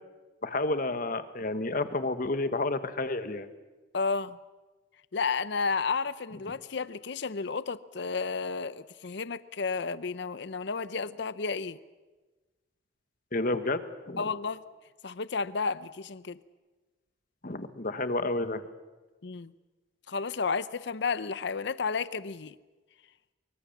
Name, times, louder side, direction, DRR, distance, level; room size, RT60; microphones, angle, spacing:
voice 1, 0.4-3.5 13.3-14.3 17.4-18.6, left 2 dB, 50° left, 10 dB, 1.4 m, -30 dB
voice 2, 3.9-4.4 5.1-11.8 14.2-14.6 15.0-16.4 19.2-19.5 20.1-22.5, left 4 dB, 65° left, 16 dB, 0.7 m, -32 dB
24.0 x 23.5 x 7.3 m, 1.2 s
head